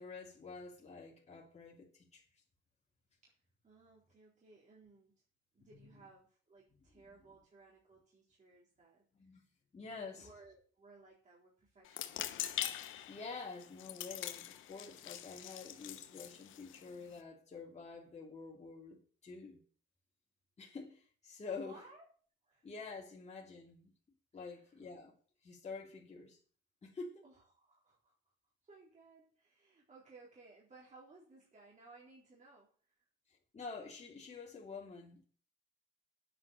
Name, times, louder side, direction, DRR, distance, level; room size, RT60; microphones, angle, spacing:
voice 1, 0.0-2.2 5.8-5.9 7.0-7.1 9.1-9.4 9.7-10.3 13.1-19.6 20.6-21.8 22.6-23.9 24.3-25.2 25.4-26.4 26.8-27.2 33.5-35.3, left 4 dB, 35° left, 3.1 m, -48 dB
voice 2, 3.6-5.2 5.5-9.0 9.3-9.5 10.1-12.4 21.5-22.1 22.4-22.7 24.4-24.8 27.2-28.3 28.6-33.1, right 3 dB, 40° right, 4.1 m, -60 dB
sound 1, 11.9-17.2, left 12 dB, 85° left, 1.1 m, -43 dB
9.7 x 9.4 x 6.7 m
cardioid pair, 90°, 20 cm